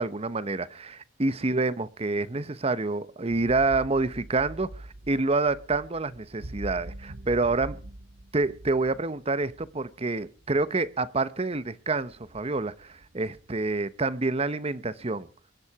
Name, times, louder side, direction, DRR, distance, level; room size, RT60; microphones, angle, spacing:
voice 1, 0.0-7.7 8.3-15.3, right 3 dB, 30° right, 0.9 m, -28 dB
sound 1, 3.3-10.9 11.6-11.7 12.0-13.7, right 1 dB, 60° right, 1.1 m, -44 dB
23.5 x 10.5 x 4.8 m
head